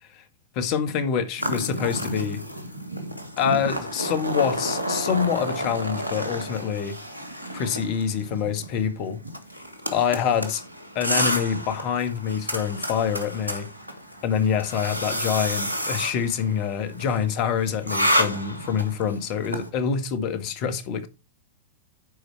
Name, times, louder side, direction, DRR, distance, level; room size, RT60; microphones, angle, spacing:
voice 1, 0.5-2.4 3.4-7.0 7.5-9.2 9.9-10.6 10.9-13.7 14.2-21.1, left 7 dB, 40° left, 1.7 m, -26 dB
sound 1, 1.4-19.7, equal, 90° right, 1.5 m, -30 dB
10.0 x 5.0 x 4.6 m
figure-of-eight pair, 95°, 0 cm